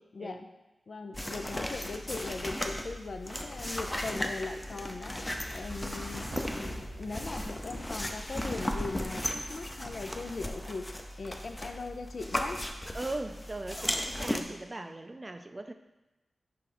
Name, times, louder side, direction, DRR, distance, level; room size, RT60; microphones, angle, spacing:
voice 1, 0.1-0.5 0.9-12.6, left 3 dB, 65° left, 6 dB, 0.5 m, -40 dB
sound 1, 1.1-14.4, left 1 dB, 15° left, 0.6 m, -36 dB
sound 2, 6.2-9.1 9.5-9.6, right 2 dB, 70° right, 0.8 m, -48 dB
voice 2, 12.9-15.7, right 2 dB, 30° right, 8 dB, 0.4 m, -39 dB
5.5 x 4.9 x 4.2 m, 1.0 s
wide cardioid pair, 85°, 0 cm